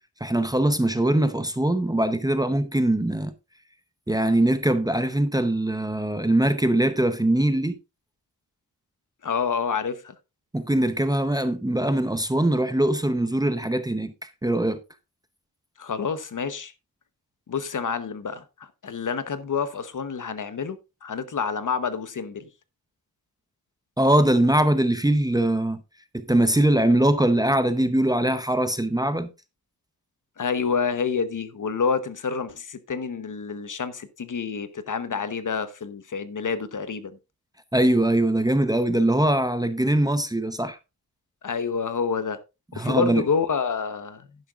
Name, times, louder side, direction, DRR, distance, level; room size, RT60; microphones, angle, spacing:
voice 1, 0.2-3.3 4.1-7.8 10.5-14.1 14.4-14.8 24.0-25.8 26.1-29.3 37.7-40.8 42.7-43.2, right 1 dB, 10° right, 0.7 m, -22 dB
voice 2, 9.2-10.1 15.8-16.7 17.5-22.5 30.4-37.2 41.4-42.4 42.7-44.3, left 5 dB, 55° left, 1.0 m, -28 dB
11.0 x 10.5 x 2.4 m
wide cardioid pair, 155°, 37 cm